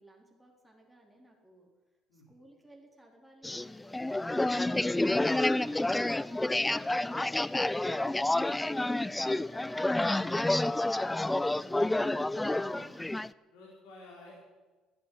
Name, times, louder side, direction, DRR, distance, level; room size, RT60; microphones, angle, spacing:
voice 1, 0.0-1.7 2.1-12.2, right 1 dB, 5° right, -2 dB, 4.2 m, -59 dB
sound 1, 3.4-13.3, left 2 dB, 10° left, 0.5 m, -29 dB
voice 2, 12.6-12.9 13.5-14.4, left 2 dB, 80° left, -4 dB, 4.8 m, -52 dB
13.5 x 10.5 x 9.6 m, 1.3 s
supercardioid pair, 70°, 0 cm